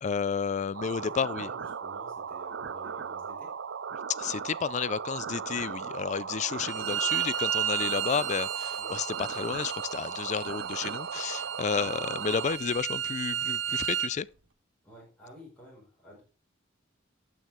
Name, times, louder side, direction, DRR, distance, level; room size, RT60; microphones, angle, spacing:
voice 1, 0.0-1.5 4.2-14.3, left 6 dB, 40° left, 0.4 m, -31 dB
sound 1, 0.7-12.6, right 6 dB, 70° right, 0.5 m, -37 dB
voice 2, 1.2-3.5 8.8-9.0 11.7-12.0 14.8-16.2, equal, 5° left, 5.0 m, -51 dB
Bowed string instrument, 6.6-14.1, right 9 dB, 85° right, 1.8 m, -33 dB
14.0 x 6.3 x 3.5 m
head